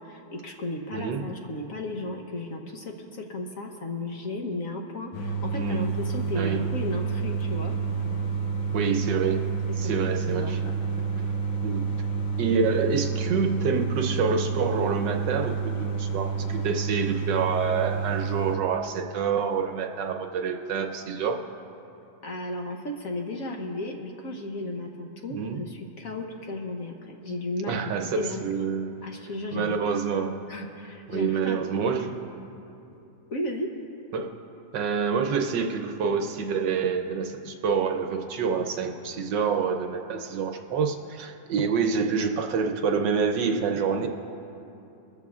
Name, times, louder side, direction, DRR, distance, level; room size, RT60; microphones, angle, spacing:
voice 1, 0.0-7.7 9.8-10.5 22.2-28.5 29.0-29.7 30.5-31.7 31.9-32.0 33.3-33.7, left 2 dB, 55° left, 1 dB, 1.2 m, -34 dB
voice 2, 0.9-1.3 5.5-5.9 6.3-6.7 8.7-9.5 9.8-10.6 11.6-11.9 12.4-21.4 25.3-25.6 27.7-28.9 29.5-30.4 31.1-32.2 34.1-34.3 34.7-44.1, right 5 dB, 70° right, 4 dB, 1.4 m, -27 dB
sound 1, 5.1-18.6, right 5 dB, 85° left, 1.7 m, -29 dB
22.0 x 14.0 x 2.4 m, 2.8 s
omnidirectional pair, 2.1 m